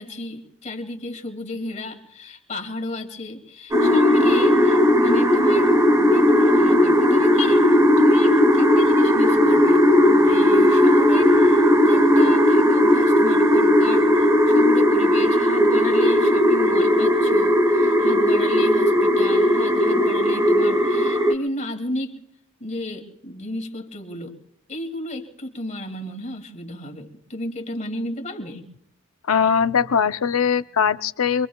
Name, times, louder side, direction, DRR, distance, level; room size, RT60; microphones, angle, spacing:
voice 1, 0.0-22.1 22.6-24.4 24.7-28.7, left 1 dB, 35° left, 4 dB, 2.4 m, -33 dB
sound 1, 3.7-21.3, left 1 dB, 15° right, 1.2 m, -17 dB
voice 2, 29.3-31.5, left 7 dB, 75° left, 13 dB, 0.6 m, -20 dB
26.0 x 24.0 x 2.3 m, 0.72 s
head